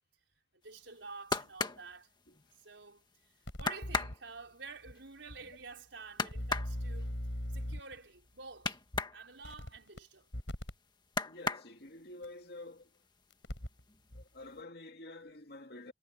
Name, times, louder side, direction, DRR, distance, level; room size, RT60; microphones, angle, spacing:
voice 1, 0.6-2.1 2.6-3.0 3.6-7.1 7.5-8.8 9.1-10.3, right 4 dB, 85° right, 4.6 m, -49 dB
sound 1, 0.9-2.8 3.2-3.3 3.6-9.2 9.6-10.7 11.0-12.1 12.6-13.2 13.5-14.2 14.5-14.6, left 4 dB, 25° left, 1.6 m, -37 dB
sound 2, 3.5-4.2 4.9-5.0 5.3-5.4 6.3-8.0 8.9-9.0 9.4-10.0 10.3-10.7 12.2-12.3 13.3-13.8 14.1-14.2, equal, 90° left, 4.8 m, -39 dB
voice 2, 11.3-12.9 14.1-15.9, left 2 dB, 60° left, 2.3 m, -49 dB
head